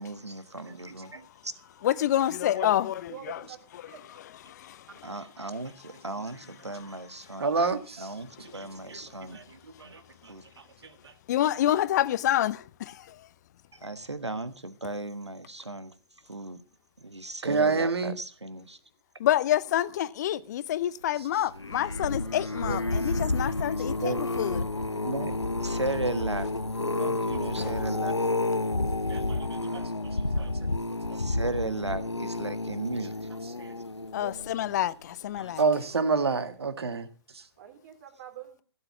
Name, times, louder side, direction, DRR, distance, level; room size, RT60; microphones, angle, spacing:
voice 1, 0.0-1.5 1.8-2.0 5.0-7.4 8.0-9.4 9.8-10.0 10.3-10.4 13.7-15.9 16.3-16.6 17.0-18.8 22.6-22.8 24.0-24.2 24.8-25.3 25.6-26.5 27.0-28.2 31.1-33.3, right 2 dB, 85° right, 1.5 m, -36 dB
voice 2, 1.8-2.9 4.6-4.8 11.3-12.9 19.2-24.7 27.6-27.7 34.1-35.6, left 12 dB, 40° left, 0.7 m, -27 dB
voice 3, 3.1-3.6 3.8-4.0 29.3-29.9 34.2-34.4 37.6-38.6, right 11 dB, 40° right, 3.1 m, -46 dB
voice 4, 7.4-8.1 8.4-10.3 17.4-18.2 21.2-21.4 23.4-23.5 27.6-27.7 29.1-29.4 30.4-30.5 31.1-31.2 33.6-33.7 35.6-37.1 37.3-37.4, right 4 dB, 65° right, 1.9 m, -29 dB
sound 1, 21.5-34.8 35.4-35.7 35.9-36.0, left 2 dB, 90° left, 0.7 m, -30 dB
16.0 x 7.7 x 6.0 m
figure-of-eight pair, 125°, 14 cm